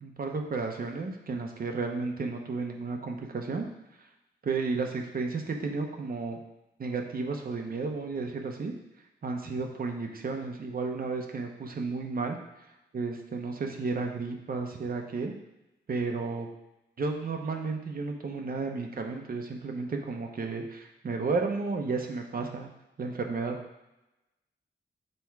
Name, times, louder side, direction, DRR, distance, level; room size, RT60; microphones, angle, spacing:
voice 1, 0.0-3.7 4.4-6.4 6.8-8.7 9.2-12.4 12.9-15.3 15.9-16.5 17.0-22.7 23.0-23.6, right 4 dB, 50° right, 3 dB, 0.8 m, -32 dB
6.8 x 3.5 x 4.6 m, 0.94 s
wide cardioid pair, 140°, 20 cm